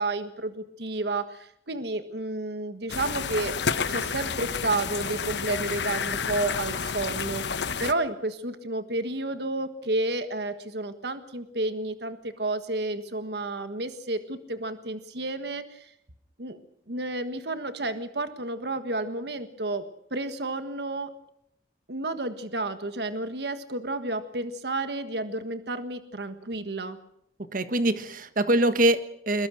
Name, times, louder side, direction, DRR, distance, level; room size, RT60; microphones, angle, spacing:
voice 1, 0.0-3.5 3.9-15.9 16.4-16.6 16.9-19.8 20.1-21.1 21.9-27.0, right 2 dB, 70° right, 10 dB, 1.5 m, -31 dB
sound 1, 2.9-7.9, left 6 dB, 80° left, 1.1 m, -30 dB
voice 2, 27.5-29.5, right 1 dB, 50° right, 11 dB, 1.6 m, -24 dB
22.0 x 21.5 x 6.3 m, 0.75 s
head